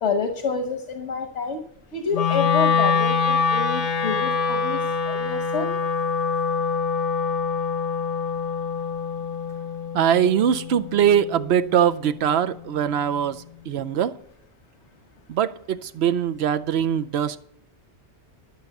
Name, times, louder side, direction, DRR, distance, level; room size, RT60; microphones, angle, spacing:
voice 1, 0.0-1.6 1.9-4.8 5.1-5.7, left 5 dB, 80° left, 6 dB, 1.5 m, -28 dB
Wind instrument woodwind instrument, 2.1-12.3, left 5 dB, 55° left, 0.9 m, -25 dB
voice 2, 9.9-14.2 15.3-17.4, right 9 dB, 70° right, 12 dB, 0.9 m, -22 dB
12.5 x 7.0 x 6.6 m, 0.69 s
omnidirectional pair, 1.1 m